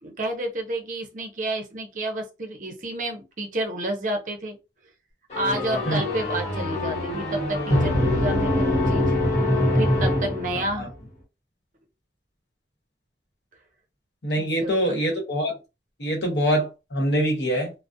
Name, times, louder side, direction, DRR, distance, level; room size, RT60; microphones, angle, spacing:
voice 1, 0.0-4.6 5.3-9.2 9.7-10.9 14.3-14.8, right 1 dB, 45° right, 0.6 m, -30 dB
sound 1, 5.3-10.9, left 1 dB, 40° left, 1.0 m, -23 dB
voice 2, 14.2-15.6 16.0-17.7, equal, 70° left, 0.9 m, -24 dB
2.4 x 2.0 x 2.5 m
head